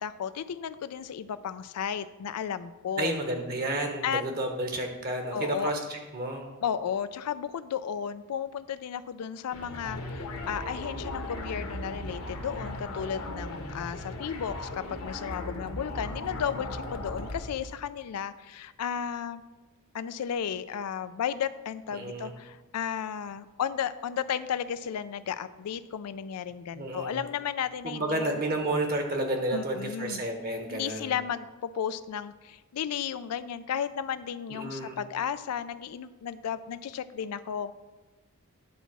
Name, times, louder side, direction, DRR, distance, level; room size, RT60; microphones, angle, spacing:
voice 1, 0.0-3.1 4.0-4.2 5.3-5.7 6.6-19.4 19.9-28.2 29.5-30.2 30.7-37.8, left 8 dB, 90° left, 13 dB, 0.4 m, -34 dB
voice 2, 3.0-6.5 21.9-22.3 26.7-27.2 27.8-31.1 34.5-35.0, right 1 dB, 40° right, 4 dB, 1.1 m, -31 dB
sound 1, 9.5-17.7, left 1 dB, 75° left, 1.3 m, -37 dB
10.5 x 4.1 x 6.0 m, 1.2 s
head